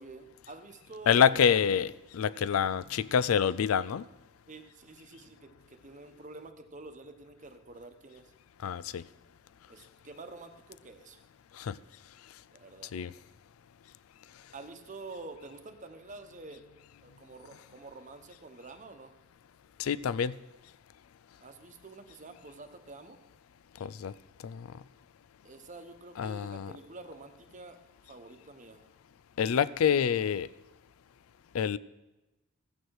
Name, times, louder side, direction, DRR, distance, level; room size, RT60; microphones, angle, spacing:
voice 1, 0.0-1.6 4.5-8.3 9.7-11.2 12.5-12.9 14.5-16.7 17.0-19.2 21.4-23.2 25.4-27.8 28.1-28.9, right 3 dB, 35° right, 6 dB, 1.0 m, -48 dB
voice 2, 1.1-4.0 8.6-9.0 11.6-11.8 12.9-13.1 19.8-20.3 23.8-24.1 24.4-24.7 26.2-26.7 29.4-30.5 31.5-31.8, left 8 dB, 80° left, 18 dB, 0.4 m, -27 dB
15.0 x 9.0 x 4.7 m, 1.0 s
head